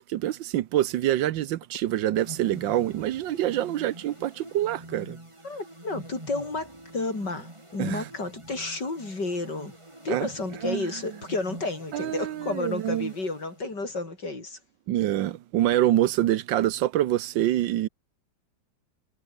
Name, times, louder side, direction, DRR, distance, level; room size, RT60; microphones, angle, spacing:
voice 1, 0.1-5.2 7.8-8.1 10.1-10.3 10.6-10.9 11.9-13.1 14.9-17.9, right 13 dB, 80° right, 1.5 m, -26 dB
sound 1, 2.2-14.0, right 1 dB, 15° right, 3.5 m, -46 dB
voice 2, 5.4-9.7 10.0-14.6, left 3 dB, 65° left, 6.0 m, -31 dB
omnidirectional pair, 2.0 m